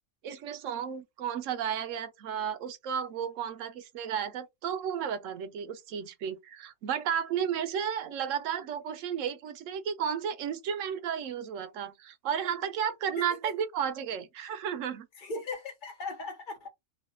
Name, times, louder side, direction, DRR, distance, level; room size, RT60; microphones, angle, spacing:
voice 1, 0.2-15.1, right 8 dB, 85° right, 1.0 m, -33 dB
voice 2, 15.2-16.7, left 3 dB, 45° left, 0.9 m, -38 dB
3.2 x 2.1 x 2.9 m
omnidirectional pair, 1.3 m